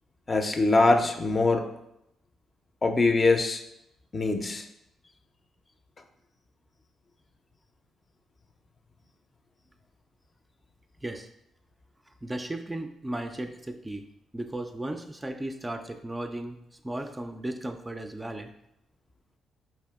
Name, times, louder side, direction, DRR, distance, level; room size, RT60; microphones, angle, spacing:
voice 1, 0.3-1.7 2.8-3.6 4.1-4.7, left 3 dB, 35° left, 6 dB, 0.5 m, -23 dB
voice 2, 11.0-11.3 12.1-14.1 14.3-18.5, right 1 dB, 15° right, 6 dB, 0.4 m, -36 dB
4.5 x 2.7 x 3.5 m, 0.80 s
supercardioid pair, 65°, 0 cm